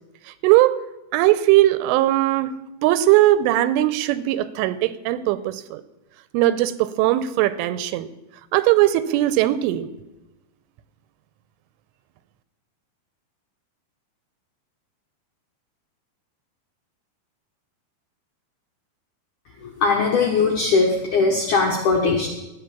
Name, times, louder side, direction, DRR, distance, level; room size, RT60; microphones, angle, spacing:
voice 1, 0.4-0.8 1.1-2.6 2.8-5.8 6.3-8.1 8.5-9.9, right 15 dB, 85° right, 15 dB, 3.1 m, -19 dB
voice 2, 19.8-22.3, left 4 dB, 70° left, -1 dB, 1.9 m, -19 dB
13.5 x 9.3 x 7.0 m, 1.0 s
omnidirectional pair, 5.7 m